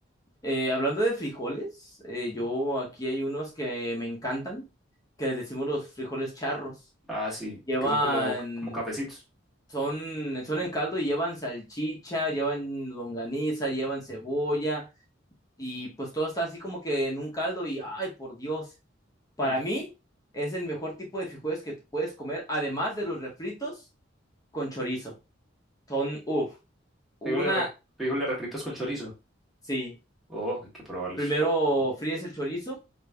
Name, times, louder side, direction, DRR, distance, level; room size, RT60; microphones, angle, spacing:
voice 1, 0.4-4.6 5.2-6.7 7.7-8.8 9.7-14.8 15.6-18.7 19.4-19.9 20.3-23.8 24.5-25.1 25.9-26.5 27.2-27.7 29.7-29.9 31.2-32.8, right 1 dB, 20° left, -2 dB, 0.8 m, -30 dB
voice 2, 7.1-8.3 8.6-9.2 19.4-19.5 27.2-27.6 28.0-29.1 30.3-31.3, equal, ahead, -6 dB, 1.3 m, -32 dB
5.0 x 2.5 x 2.2 m, 0.27 s
head